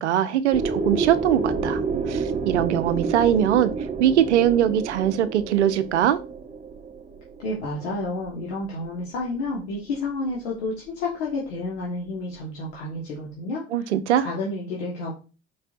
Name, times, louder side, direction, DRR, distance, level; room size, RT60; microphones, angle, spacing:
voice 1, 0.0-1.8 2.1-3.7 4.0-6.2 13.7-14.3, right 10 dB, 80° right, 12 dB, 0.5 m, -21 dB
sound 1, 0.5-8.3, right 4 dB, 20° right, 0.8 m, -29 dB
voice 2, 7.4-13.6 14.2-15.2, left 2 dB, 70° left, -4 dB, 1.5 m, -30 dB
4.7 x 4.2 x 2.5 m, 0.32 s
figure-of-eight pair, 60°, 34 cm